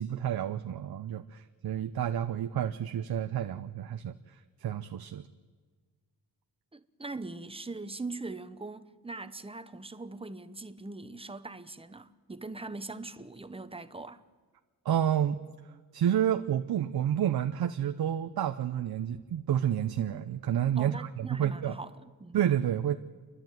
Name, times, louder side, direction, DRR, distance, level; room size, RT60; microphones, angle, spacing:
voice 1, 0.0-4.1 4.6-5.2 14.8-15.4 15.9-21.8 22.3-23.0, right 10 dB, 75° right, 0.8 m, -29 dB
voice 2, 6.7-14.2 20.8-22.4, right 3 dB, 15° right, 0.9 m, -41 dB
30.0 x 11.5 x 9.1 m
wide cardioid pair, 115°, 37 cm